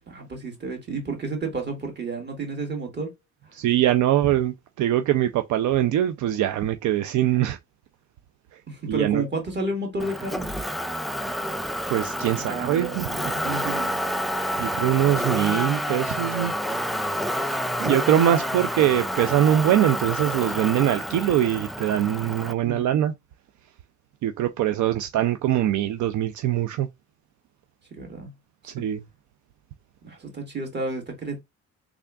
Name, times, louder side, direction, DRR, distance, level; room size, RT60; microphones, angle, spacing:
voice 1, 0.1-3.1 8.7-10.5 12.4-14.0 22.6-23.0 28.0-28.3 28.8-28.9 30.0-31.4, right 3 dB, 35° right, 1.8 m, -31 dB
voice 2, 3.6-7.6 8.9-9.2 11.9-13.1 14.6-16.5 17.8-23.1 24.2-26.9 28.6-29.0, right 12 dB, 75° right, 0.5 m, -22 dB
Motor vehicle (road), 10.0-22.5, equal, ahead, 0.3 m, -29 dB
3.5 x 3.5 x 2.3 m
cardioid pair, 90°, 30 cm